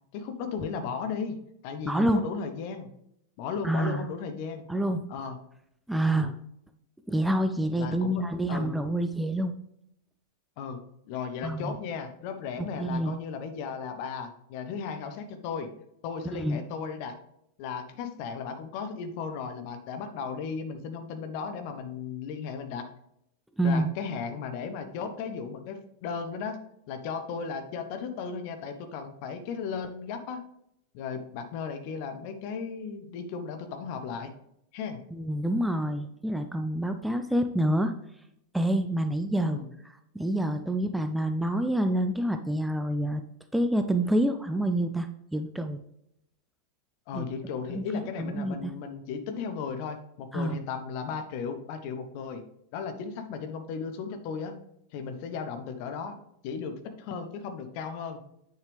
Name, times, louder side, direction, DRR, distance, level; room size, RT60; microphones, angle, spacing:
voice 1, 0.1-1.4 1.6-2.9 3.4-4.7 5.1-5.4 6.1-6.3 7.8-8.7 10.6-10.8 11.1-15.7 16.0-17.1 17.6-22.8 23.6-26.6 26.9-30.4 30.9-34.3 34.7-35.0 39.4-39.7 47.1-52.4 52.7-54.5 54.9-56.1 56.4-58.2, left 6 dB, 45° left, 8 dB, 1.1 m, -35 dB
voice 2, 1.8-2.2 3.6-4.1 4.7-5.0 5.9-6.3 7.1-9.5 11.4-11.8 12.8-13.1 16.3-16.6 23.6-23.9 35.1-37.9 38.5-39.6 40.1-43.2 43.5-45.8 47.1-47.2 47.7-48.7 50.3-50.6, right 1 dB, 5° right, 7 dB, 0.5 m, -27 dB
8.8 x 6.6 x 3.4 m, 0.77 s
figure-of-eight pair, 90°, 0 cm